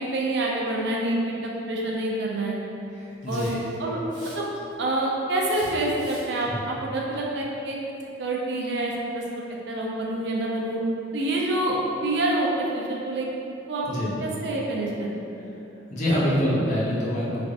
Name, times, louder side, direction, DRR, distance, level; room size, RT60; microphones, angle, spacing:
voice 1, 0.0-2.6 3.3-3.5 3.8-4.0 4.4-4.5 4.8-7.8 8.2-10.8 11.1-13.3 13.7-13.9 14.2-15.1, right 1 dB, 60° right, -3 dB, 0.4 m, -27 dB
voice 2, 2.9-3.6 6.5-6.6 13.9-14.1 15.9-17.5, equal, 40° left, -7 dB, 0.6 m, -25 dB
Hiss, 3.2-3.7 4.1-4.7 5.4-6.4, right 1 dB, 25° right, 0.7 m, -46 dB
3.3 x 2.5 x 2.4 m, 2.8 s
head